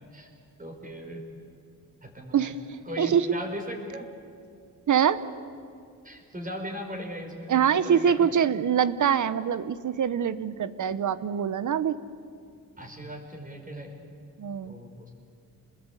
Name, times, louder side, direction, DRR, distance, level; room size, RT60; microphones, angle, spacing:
voice 1, 0.6-1.2 2.0-2.5 2.8-4.1 6.0-8.3 12.8-13.9 14.6-15.1, equal, 25° right, 2 dB, 5.1 m, -38 dB
voice 2, 4.9-5.2 7.5-11.9 14.4-14.7, right 8 dB, 55° right, 14 dB, 1.0 m, -24 dB
28.5 x 20.5 x 8.3 m, 2.4 s
cardioid pair, 115°, 35 cm